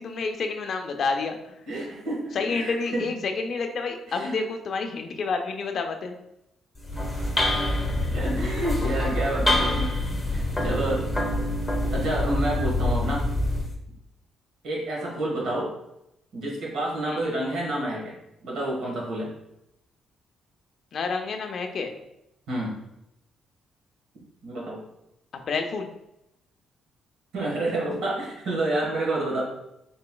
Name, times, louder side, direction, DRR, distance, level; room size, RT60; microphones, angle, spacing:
voice 1, 0.0-1.6 2.3-6.2 17.1-17.2 20.9-21.9 25.5-25.9, left 4 dB, 55° left, 5 dB, 0.5 m, -29 dB
voice 2, 1.7-3.1 4.1-4.4 6.9-7.3 7.8-11.1 11.9-13.3 14.6-15.7 16.3-19.3 22.5-22.8 24.4-24.8 27.3-29.4, right 1 dB, 75° right, -3 dB, 1.4 m, -29 dB
sound 1, 6.8-13.7, left 1 dB, 10° left, 1.0 m, -26 dB
4.2 x 3.8 x 2.2 m, 0.85 s
cardioid pair, 90°, 0 cm